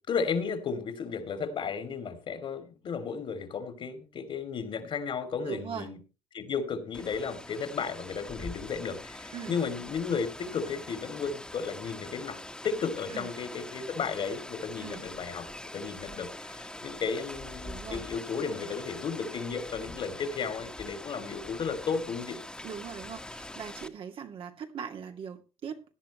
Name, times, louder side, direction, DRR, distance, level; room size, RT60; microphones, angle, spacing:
voice 1, 0.1-6.0 6.3-12.4 12.6-15.5 15.7-22.4, left 5 dB, 60° left, 2.9 m, -34 dB
voice 2, 5.5-5.9 9.3-9.6 13.1-13.3 14.8-15.0 17.6-18.1 22.6-25.8, right 7 dB, 65° right, 2.3 m, -40 dB
Rain, 6.9-23.9, left 1 dB, 10° left, 1.6 m, -43 dB
17.0 x 11.0 x 3.2 m
cardioid pair, 90°, 10 cm